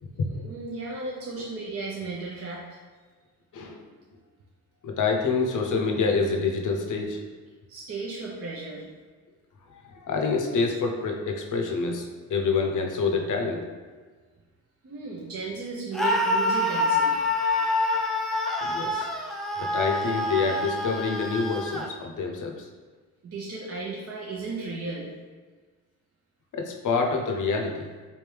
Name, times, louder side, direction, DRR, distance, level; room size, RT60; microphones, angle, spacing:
voice 1, 0.3-2.8 7.7-8.9 14.8-17.3 23.2-25.1, right 3 dB, 35° right, -3 dB, 0.7 m, -35 dB
voice 2, 4.8-7.2 9.7-13.7 18.6-19.1 19.6-22.7 26.5-27.9, left 4 dB, 50° left, 2 dB, 0.7 m, -27 dB
Screaming, 15.9-21.9, left 2 dB, ahead, 0.5 m, -26 dB
3.5 x 2.7 x 3.3 m, 1.4 s
supercardioid pair, 55°, 39 cm